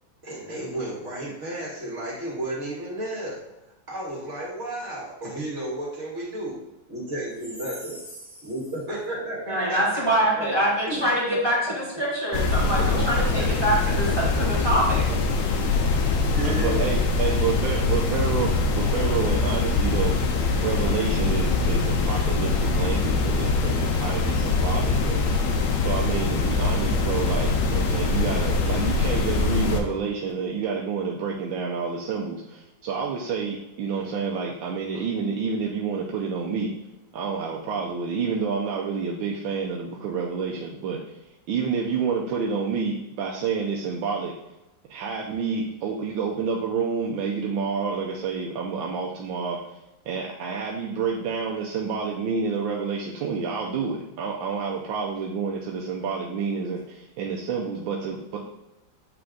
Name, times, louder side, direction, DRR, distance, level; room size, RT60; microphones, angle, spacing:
voice 1, 0.2-3.4 3.9-6.6 6.9-8.0 8.4-11.6 12.8-14.1 15.9-16.9, right 1 dB, 35° right, -5 dB, 2.0 m, -33 dB
voice 2, 9.5-15.1, right 1 dB, 15° right, -6 dB, 2.0 m, -24 dB
sound 1, 12.3-29.8, left 3 dB, 70° left, 1.4 m, -23 dB
voice 3, 16.4-20.1 20.6-25.2 25.8-36.7 37.1-41.2 41.5-44.3 44.9-49.8 50.0-58.4, right 5 dB, 90° right, -1 dB, 1.5 m, -29 dB
8.3 x 3.4 x 3.7 m, 0.97 s
omnidirectional pair, 2.1 m